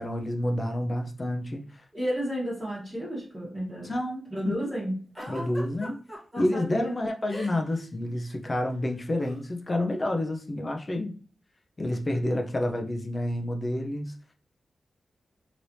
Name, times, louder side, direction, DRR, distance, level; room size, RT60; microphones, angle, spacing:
voice 1, 0.0-1.8 3.8-4.7 5.3-6.0 6.4-11.2 11.8-14.1, left 1 dB, 25° left, 0.5 m, -29 dB
voice 2, 1.9-3.9 4.3-5.5 6.3-7.0, equal, 15° right, 1.3 m, -32 dB
Giggle, 5.2-6.5 7.3-8.3 9.2-9.4, equal, 10° left, 1.1 m, -41 dB
3.3 x 3.0 x 2.6 m
wide cardioid pair, 150°, 0 cm